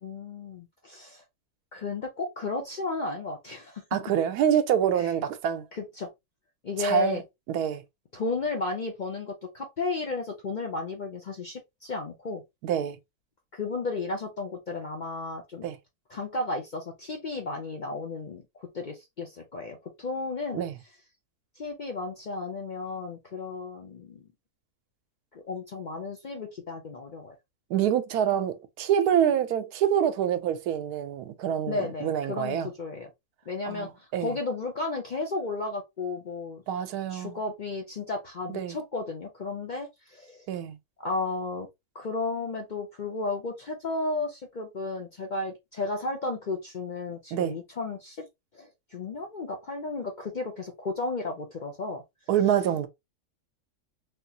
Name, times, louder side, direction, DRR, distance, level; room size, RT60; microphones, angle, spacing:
voice 1, 0.0-1.2 1.7-3.8 5.0-5.1 5.7-6.1 6.6-7.2 8.1-12.4 13.5-15.7 16.1-20.6 21.6-24.3 25.3-27.4 31.7-33.1 33.5-36.6 37.1-40.5 41.0-41.7 41.9-48.2 48.5-52.0, left 3 dB, 60° left, 0.5 m, -33 dB
voice 2, 3.9-5.7 6.8-7.2 7.5-7.8 12.6-13.0 15.6-15.8 20.5-20.8 27.7-32.7 33.7-34.4 36.7-37.4 38.5-38.8 40.5-40.8 47.3-47.6 52.3-52.9, right 9 dB, 90° right, 1.1 m, -26 dB
3.6 x 2.4 x 2.7 m
omnidirectional pair, 1.6 m